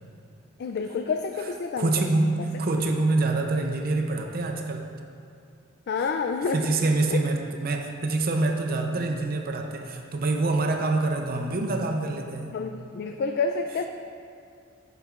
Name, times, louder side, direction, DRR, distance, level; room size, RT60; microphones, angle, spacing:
voice 1, 0.6-1.9 5.9-6.8 7.1-7.2 12.5-13.9, left 4 dB, 50° left, 5 dB, 0.3 m, -28 dB
voice 2, 1.8-4.9 6.5-12.6, right 2 dB, 45° right, 3 dB, 0.6 m, -26 dB
11.0 x 7.2 x 2.4 m, 2.4 s
head